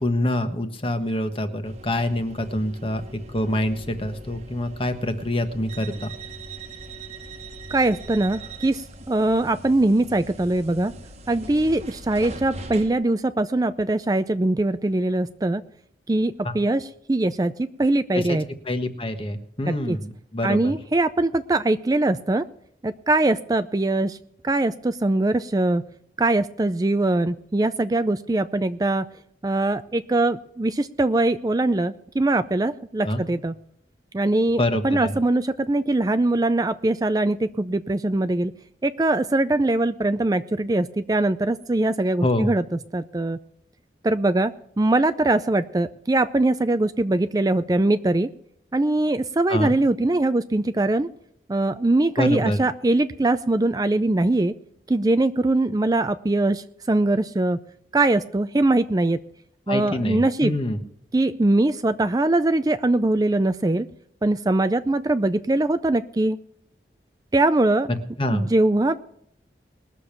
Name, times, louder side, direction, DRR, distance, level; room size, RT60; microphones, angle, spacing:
voice 1, 0.0-3.0 3.3-6.1 16.4-16.5 18.1-18.4 18.6-20.7 33.0-33.2 34.6-35.1 42.2-42.5 49.5-49.7 52.2-52.6 59.7-60.8 68.2-68.5, left 1 dB, 30° left, 7 dB, 1.3 m, -26 dB
sound 1, 1.6-12.9, right 2 dB, 40° right, 1.3 m, -41 dB
voice 2, 7.7-10.9 11.3-15.6 16.1-18.4 19.7-20.0 20.4-22.5 22.8-24.2 24.4-25.8 26.2-29.0 29.4-33.6 34.1-38.5 38.8-42.6 42.9-43.4 44.0-44.5 44.8-48.3 48.7-51.1 51.5-54.5 54.9-57.6 57.9-59.2 59.7-60.5 61.1-63.9 64.2-66.4 67.3-67.9 68.3-68.9, right 2 dB, 20° right, 11 dB, 0.4 m, -22 dB
20.5 x 6.9 x 5.9 m, 0.69 s
head